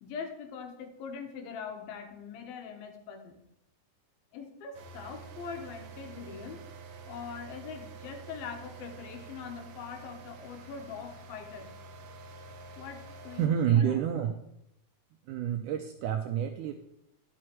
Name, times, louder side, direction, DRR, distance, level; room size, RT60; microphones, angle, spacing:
voice 1, 0.0-3.4 4.3-6.6 7.1-11.7 12.8-14.3, left 6 dB, 80° left, 5 dB, 3.1 m, -42 dB
sound 1, 4.7-13.5, right 4 dB, 70° right, 1.8 m, -48 dB
voice 2, 13.4-14.4 15.3-16.7, right 9 dB, 90° right, 6 dB, 1.8 m, -28 dB
10.5 x 6.2 x 4.5 m, 0.79 s
omnidirectional pair, 4.2 m